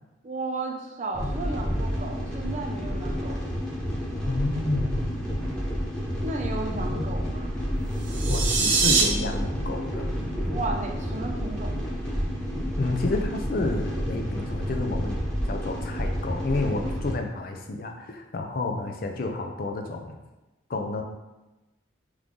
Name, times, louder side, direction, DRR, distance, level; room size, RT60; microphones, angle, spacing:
voice 1, 0.2-3.4 6.2-7.5 10.5-11.8, right 3 dB, 35° right, 2 dB, 0.5 m, -34 dB
sound 1, 1.1-17.1, equal, 5° left, 0.9 m, -30 dB
voice 2, 4.3-5.4 6.9-7.1 8.3-10.1 12.8-15.2 15.5-20.2 20.7-21.0, left 2 dB, 50° left, 4 dB, 0.5 m, -30 dB
sound 2, 8.0-9.0, right 5 dB, 85° right, 0.7 m, -23 dB
3.7 x 3.2 x 3.7 m, 1.1 s
head